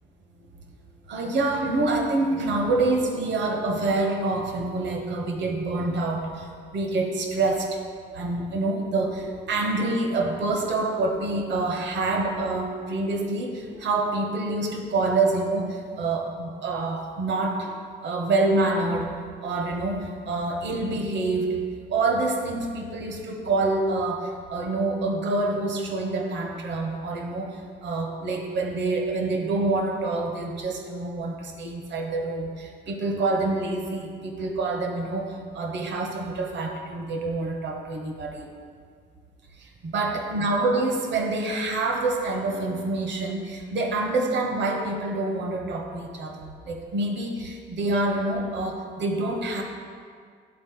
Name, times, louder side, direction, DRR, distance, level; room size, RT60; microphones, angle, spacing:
voice 1, 1.1-7.8 8.1-19.1 19.4-21.6 21.9-38.5 39.6-49.6, right 2 dB, 65° right, 2 dB, 1.0 m, -27 dB
10.5 x 4.0 x 3.8 m, 2.1 s
cardioid pair, 90°, 20 cm